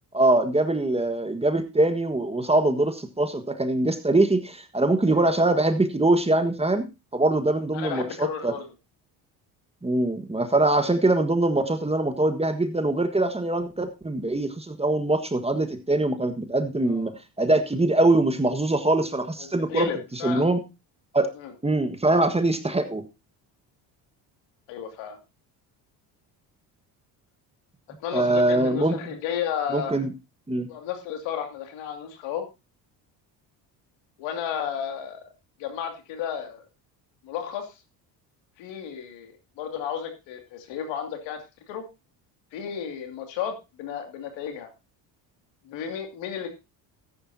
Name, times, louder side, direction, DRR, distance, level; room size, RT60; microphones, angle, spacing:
voice 1, 0.1-6.9 7.1-8.5 9.8-17.1 17.4-20.6 21.1-21.3 21.6-23.0 28.1-29.0 29.7-30.1 30.5-30.7, right 2 dB, 15° right, 8 dB, 1.5 m, -23 dB
voice 2, 5.1-5.6 7.7-8.6 16.9-17.1 19.4-20.5 21.4-21.5 24.7-25.2 28.0-30.0 30.7-32.5 34.2-35.2 35.6-36.6 37.2-37.7 38.6-41.4 41.7-41.8 42.5-44.7 45.7-46.5, left 8 dB, 80° left, 5 dB, 2.6 m, -33 dB
14.0 x 10.5 x 2.8 m, 0.27 s
supercardioid pair, 80°, 45 cm